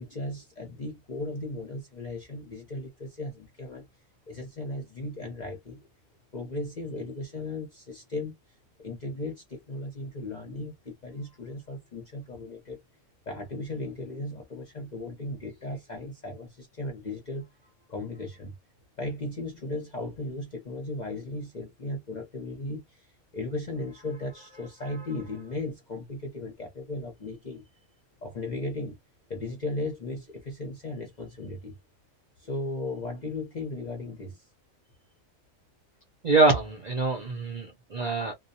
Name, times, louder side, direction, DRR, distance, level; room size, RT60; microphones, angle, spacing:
voice 1, 0.0-3.9 4.3-5.9 6.3-8.4 8.8-12.8 13.3-18.5 19.0-27.6 28.2-29.0 29.3-31.8 32.4-34.5, left 2 dB, 45° left, 0.6 m, -36 dB
voice 2, 36.2-38.3, right 3 dB, 45° right, 0.5 m, -24 dB
2.2 x 2.2 x 2.6 m
omnidirectional pair, 1.4 m